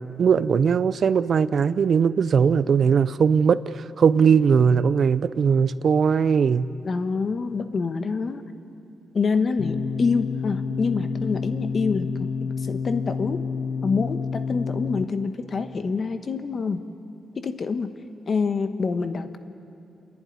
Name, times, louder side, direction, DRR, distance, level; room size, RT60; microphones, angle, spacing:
voice 1, 0.0-6.7, right 6 dB, 60° right, 15 dB, 0.5 m, -20 dB
voice 2, 6.8-8.4 9.1-13.4 13.8-16.8 17.4-17.9 18.3-19.4, left 4 dB, 50° left, 9 dB, 1.1 m, -26 dB
sound 1, 9.6-15.0, left 5 dB, 85° left, 0.8 m, -29 dB
28.5 x 11.0 x 9.4 m, 2.7 s
cardioid pair, 95°, 0 cm